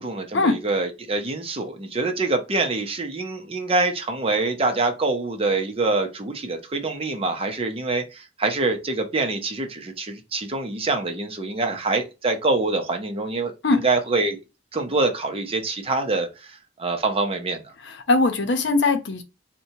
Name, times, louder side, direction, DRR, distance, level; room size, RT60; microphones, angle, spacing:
voice 1, 0.0-13.5 13.8-14.4 14.7-17.6, right 3 dB, 30° right, 0.6 m, -25 dB
voice 2, 17.8-19.2, left 3 dB, 70° left, 0.7 m, -21 dB
4.3 x 2.2 x 2.7 m
head